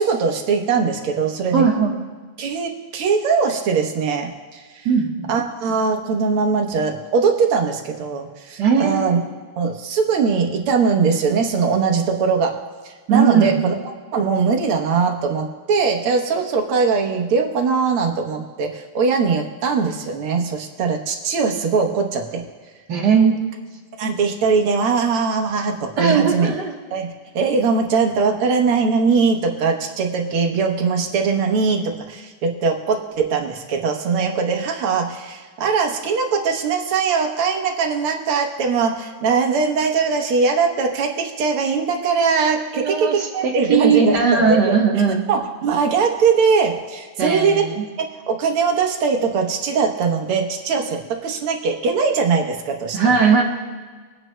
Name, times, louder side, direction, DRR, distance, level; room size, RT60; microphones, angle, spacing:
voice 1, 0.0-1.6 2.4-4.9 5.3-9.2 9.6-12.6 13.1-13.7 14.1-22.5 24.0-26.5 26.9-44.8 45.3-47.6 48.0-53.2, right 5 dB, 80° right, 2 dB, 2.0 m, -21 dB
voice 2, 1.5-1.9 4.8-5.3 8.6-9.1 13.1-13.6 22.9-23.5 26.0-26.7 42.7-45.2 47.2-47.8 52.9-53.4, right 6 dB, 55° right, 1 dB, 1.6 m, -18 dB
22.0 x 9.2 x 2.2 m, 1.5 s
omnidirectional pair, 2.4 m